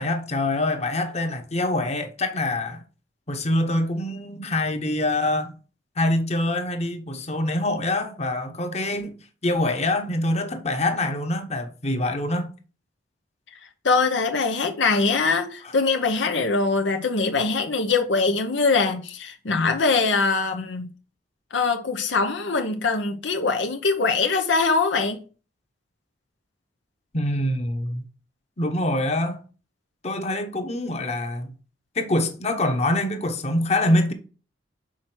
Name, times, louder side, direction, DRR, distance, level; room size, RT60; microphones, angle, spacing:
voice 1, 0.0-2.8 3.3-5.6 6.0-9.1 9.4-12.5 27.1-28.0 28.6-29.4 30.0-31.5 31.9-34.1, left 1 dB, 35° left, 1.1 m, -25 dB
voice 2, 13.8-20.9 21.5-25.2, left 4 dB, 85° left, 0.9 m, -22 dB
6.2 x 4.4 x 6.2 m
head